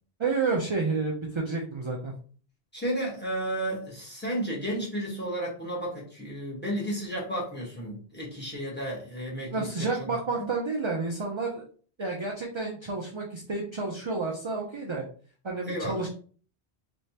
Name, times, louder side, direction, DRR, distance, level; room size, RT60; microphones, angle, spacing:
voice 1, 0.2-2.1 9.5-11.6 12.0-15.1 15.4-16.1, right 3 dB, 40° right, 0 dB, 0.4 m, -30 dB
voice 2, 2.7-10.2 15.7-16.1, right 1 dB, 10° left, -3 dB, 1.2 m, -33 dB
3.2 x 3.1 x 2.8 m, 0.44 s
omnidirectional pair, 1.1 m